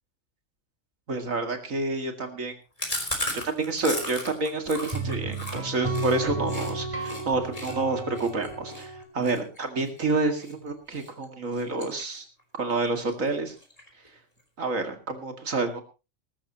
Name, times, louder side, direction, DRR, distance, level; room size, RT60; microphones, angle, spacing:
voice 1, 1.1-2.5 3.4-12.2 12.6-13.5 14.6-15.8, right 3 dB, 75° right, 6 dB, 2.6 m, -28 dB
Chewing mastication, 2.8-6.7 7.0-7.2 7.5-10.5 10.9-11.2 11.5-12.4 12.7-12.8 13.1-13.2 13.5-14.1, left 1 dB, 25° left, 3.8 m, -35 dB
sound 1, 4.7-9.0, right 2 dB, 25° right, 2.4 m, -33 dB
21.0 x 13.0 x 3.0 m, 0.29 s
omnidirectional pair, 1.4 m